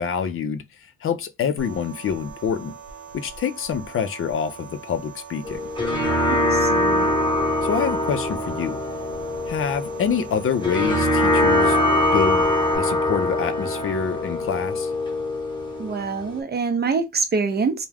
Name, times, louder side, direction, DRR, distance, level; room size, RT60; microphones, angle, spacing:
voice 1, 0.0-2.7 3.1-5.6 7.6-8.8 9.5-11.8 12.1-12.5 12.8-14.9, left 7 dB, 45° left, 0.4 m, -26 dB
sound 1, 1.6-12.8, right 7 dB, 75° right, 0.7 m, -42 dB
sound 2, 5.5-16.4, left 1 dB, 15° left, 0.9 m, -23 dB
voice 2, 6.3-7.1 15.8-17.9, right 4 dB, 35° right, 0.6 m, -25 dB
2.3 x 2.1 x 3.3 m
cardioid pair, 90°, 30 cm